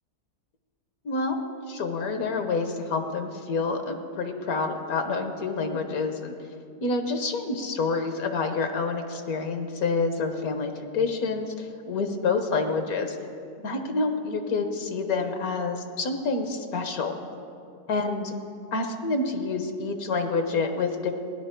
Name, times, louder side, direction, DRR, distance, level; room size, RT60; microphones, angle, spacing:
voice 1, 1.0-6.4 6.8-13.2 13.6-17.2 17.9-18.3 18.7-21.1, left 4 dB, 65° left, 6 dB, 1.4 m, -28 dB
17.5 x 10.5 x 4.5 m, 2.5 s
omnidirectional pair, 1.7 m